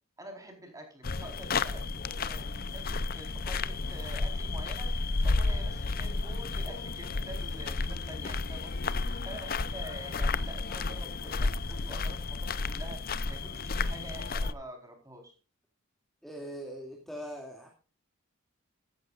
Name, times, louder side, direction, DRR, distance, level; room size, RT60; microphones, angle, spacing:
voice 1, 0.2-4.9 5.2-13.0 13.3-15.3, right 1 dB, 15° right, 3 dB, 4.3 m, -47 dB
sound 1, 1.0-14.5, left 3 dB, 45° left, 0.6 m, -32 dB
voice 2, 16.2-17.7, equal, ahead, -1 dB, 2.5 m, -41 dB
15.0 x 14.5 x 2.5 m, 0.34 s
head